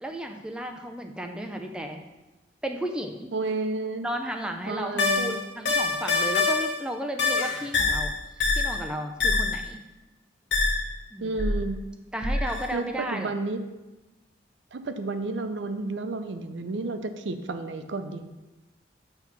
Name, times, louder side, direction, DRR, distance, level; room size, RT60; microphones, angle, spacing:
voice 1, 0.0-2.0 2.6-3.3 4.0-9.8 11.1-11.5 12.1-13.3, right 1 dB, 5° right, 4 dB, 0.4 m, -34 dB
voice 2, 3.3-4.1 4.7-5.4 11.2-11.8 12.7-12.8 13.1-13.6 14.7-18.3, right 3 dB, 80° right, 8 dB, 0.5 m, -31 dB
sound 1, 5.0-6.8 7.2-8.9 9.2-9.7 10.5-10.9 11.4-11.7 12.2-12.7, left 4 dB, 80° left, 1.1 m, -25 dB
7.9 x 3.0 x 5.7 m, 1.1 s
head